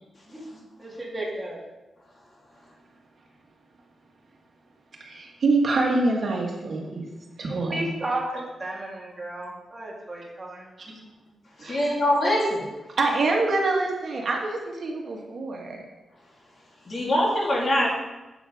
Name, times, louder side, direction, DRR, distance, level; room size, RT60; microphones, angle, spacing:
voice 1, 0.8-1.6 7.5-10.7, right 1 dB, 20° right, -3 dB, 2.6 m, -33 dB
voice 2, 5.0-7.1 7.4-7.9 10.8-10.9 11.6-11.9 12.2-12.4 12.9-15.8, right 3 dB, 55° right, 0 dB, 1.7 m, -26 dB
voice 3, 11.6-12.6 16.9-17.9, left 1 dB, 45° left, -4 dB, 3.2 m, -23 dB
11.0 x 8.2 x 3.6 m, 1.1 s
wide cardioid pair, 105°, 0 cm